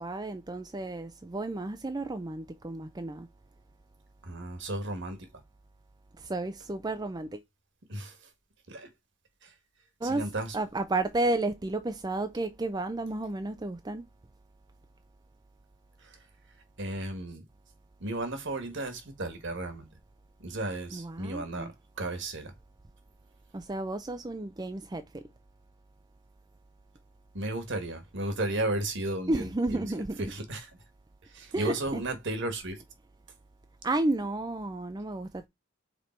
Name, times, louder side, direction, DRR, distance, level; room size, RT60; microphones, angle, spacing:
voice 1, 0.0-3.3 6.2-7.4 10.0-10.2 10.5-14.0 20.9-21.7 23.5-25.2 29.3-30.2 31.5-32.0 33.8-35.5, right 2 dB, 20° right, 0.4 m, -32 dB
voice 2, 4.2-5.4 7.9-8.3 8.7-8.9 9.4-9.5 10.0-10.6 16.0-16.2 16.8-17.4 18.0-19.9 20.4-22.5 27.3-29.9 30.2-30.7 31.2-32.8, right 2 dB, 55° right, 1.6 m, -34 dB
5.1 x 4.4 x 4.4 m
head